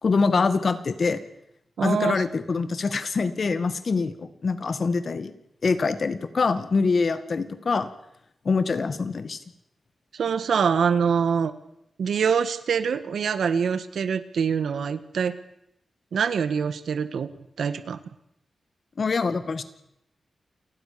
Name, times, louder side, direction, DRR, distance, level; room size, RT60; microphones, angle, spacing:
voice 1, 0.0-1.2 1.8-5.3 5.6-7.9 8.5-9.4 19.0-19.6, left 4 dB, 45° left, 11 dB, 1.9 m, -24 dB
voice 2, 1.8-2.2 10.1-11.5 12.0-15.4 16.1-17.3 17.6-18.0, right 6 dB, 90° right, 13 dB, 1.6 m, -24 dB
29.0 x 19.5 x 6.9 m, 0.81 s
wide cardioid pair, 150°, 0 cm